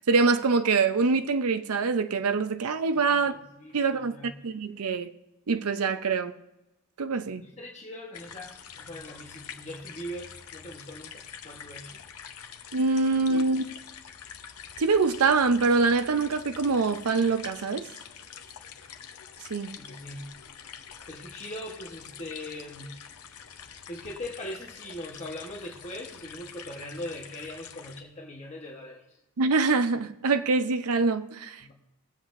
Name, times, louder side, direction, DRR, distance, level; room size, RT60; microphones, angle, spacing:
voice 1, 0.1-3.3 3.7-5.1 5.5-6.3 7.0-7.4 12.7-13.6 14.8-17.9 19.5-19.8 29.4-31.7, right 4 dB, 80° right, 0.6 m, -24 dB
voice 2, 3.0-4.4 7.4-12.0 13.3-13.5 19.8-20.3 21.1-23.3 23.9-29.2 31.6-31.7, left 1 dB, 30° left, 1.1 m, -41 dB
sound 1, 8.1-28.0, left 8 dB, 85° left, 0.8 m, -46 dB
21.0 x 7.7 x 2.6 m
head